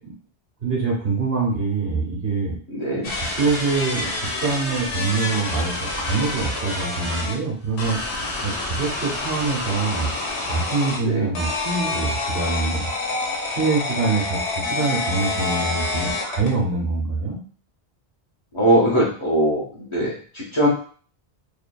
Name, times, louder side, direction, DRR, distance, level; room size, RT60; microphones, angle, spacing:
voice 1, 0.6-2.6 3.3-8.0 8.4-10.1 10.5-12.9 13.5-17.4, right 4 dB, 65° right, -3 dB, 1.1 m, -24 dB
voice 2, 2.7-3.1 11.0-11.3 18.5-20.7, right 1 dB, 30° left, -6 dB, 0.8 m, -21 dB
sound 1, 3.0-7.3 7.8-11.0 11.3-16.5, left 2 dB, 90° left, 1.0 m, -27 dB
2.7 x 2.5 x 2.3 m, 0.43 s
omnidirectional pair, 1.1 m